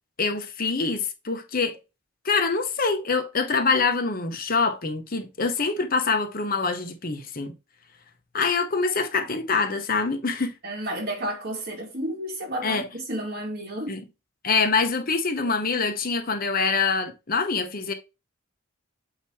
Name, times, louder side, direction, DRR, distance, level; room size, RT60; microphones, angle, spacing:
voice 1, 0.2-1.8 2.2-7.5 8.3-10.5 12.6-12.9 13.9-14.0 14.4-17.9, left 4 dB, 45° left, 1.0 m, -25 dB
voice 2, 10.6-14.0, right 1 dB, 45° right, 2.1 m, -32 dB
8.4 x 3.0 x 4.8 m
head